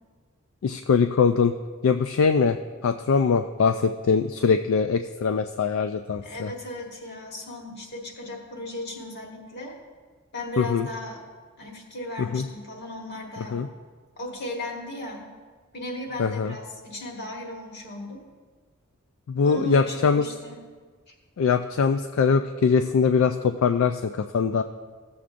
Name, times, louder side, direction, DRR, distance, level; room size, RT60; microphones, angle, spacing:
voice 1, 0.6-1.5 1.8-2.6 2.8-6.5 10.6-10.9 12.2-12.4 13.5-13.7 16.2-16.5 19.3-20.3 21.4-24.6, left 5 dB, 70° left, 8 dB, 0.3 m, -22 dB
voice 2, 6.2-9.8 10.3-11.2 11.6-13.6 14.2-15.3 15.7-18.2 19.4-20.6 21.1-21.2, left 1 dB, 50° left, -1 dB, 1.7 m, -36 dB
16.0 x 7.1 x 2.5 m, 1.5 s
head